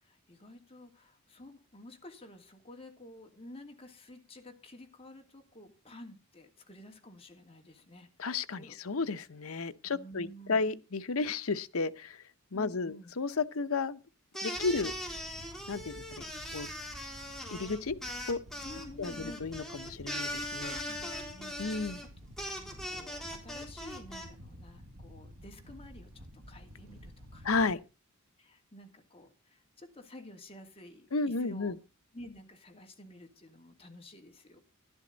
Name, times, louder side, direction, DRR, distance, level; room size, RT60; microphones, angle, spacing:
voice 1, 0.0-8.1 8.5-8.8 9.8-10.6 12.5-13.1 17.4-17.5 18.6-19.5 20.4-20.5 20.9-21.9 22.5-27.5 28.4-31.7 32.1-34.6, left 1 dB, 30° left, 2.7 m, -51 dB
voice 2, 8.2-12.2 12.5-14.0 14.4-14.9 15.7-16.3 16.5-16.7 17.5-18.0 18.3-18.4 19.0-19.1 19.4-20.8 21.6-22.0 27.4-27.8 31.1-31.8, left 4 dB, 75° left, 0.9 m, -32 dB
sound 1, 14.3-24.3, left 1 dB, ahead, 3.3 m, -40 dB
sound 2, 14.5-27.7, equal, 75° right, 1.5 m, -51 dB
12.0 x 12.0 x 4.0 m
head